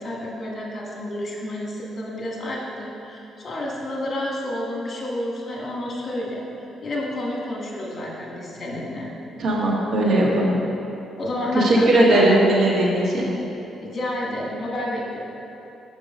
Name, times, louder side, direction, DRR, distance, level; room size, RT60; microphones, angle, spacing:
voice 1, 0.0-6.5 6.8-9.1 11.2-12.3 13.8-15.2, left 1 dB, 40° left, -2 dB, 1.6 m, -29 dB
voice 2, 9.4-10.6 11.5-13.3, right 1 dB, 70° right, -3 dB, 1.6 m, -18 dB
6.5 x 6.0 x 5.0 m, 2.9 s
cardioid pair, 90°, 0 cm